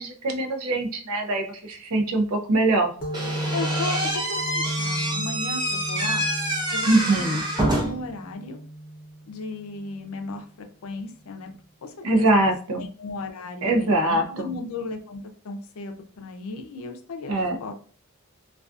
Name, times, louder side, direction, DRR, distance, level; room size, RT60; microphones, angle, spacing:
voice 1, 0.0-2.9 6.9-7.4 12.0-12.8 13.6-14.6 17.3-17.6, right 2 dB, 75° right, 5 dB, 0.5 m, -23 dB
sound 1, 3.0-10.3, right 1 dB, 40° left, 0.7 m, -34 dB
Slam / Squeak, 3.1-8.1, right 1 dB, 20° right, 0.5 m, -27 dB
voice 2, 3.5-6.3 6.7-8.6 9.3-10.5 10.8-11.5 11.8-12.5 12.8-17.7, left 3 dB, 75° left, 5 dB, 0.4 m, -35 dB
2.3 x 2.3 x 2.4 m, 0.42 s
head